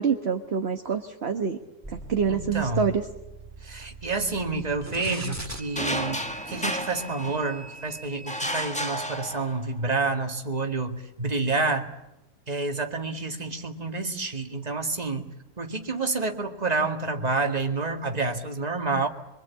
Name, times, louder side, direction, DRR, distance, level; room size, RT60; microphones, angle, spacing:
voice 1, 0.0-1.6 2.1-3.0, right 6 dB, 45° right, 5 dB, 1.5 m, -26 dB
sound 1, 1.8-8.5, right 2 dB, 10° right, 2.1 m, -42 dB
voice 2, 2.3-2.9 3.6-11.9 12.5-15.3 15.6-19.1, right 3 dB, 25° right, 4 dB, 2.2 m, -29 dB
sound 2, 5.8-7.7 8.3-9.8, equal, 5° left, 1.5 m, -32 dB
25.0 x 24.5 x 8.5 m, 0.89 s
omnidirectional pair, 1.6 m